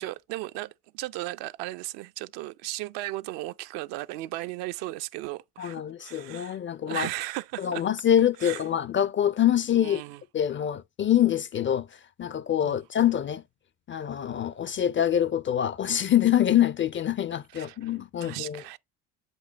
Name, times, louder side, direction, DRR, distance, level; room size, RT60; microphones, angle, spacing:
voice 1, 0.0-6.6 6.9-7.8 8.4-8.6 9.8-10.2 12.6-12.8 17.5-17.9 18.2-18.8, right 17 dB, 65° right, 0.6 m, -36 dB
voice 2, 5.6-7.1 7.6-10.0 10.3-11.9 12.2-13.4 13.9-18.6, left 10 dB, 30° left, 0.4 m, -25 dB
7.8 x 5.4 x 2.9 m
hypercardioid pair, 60°, 46 cm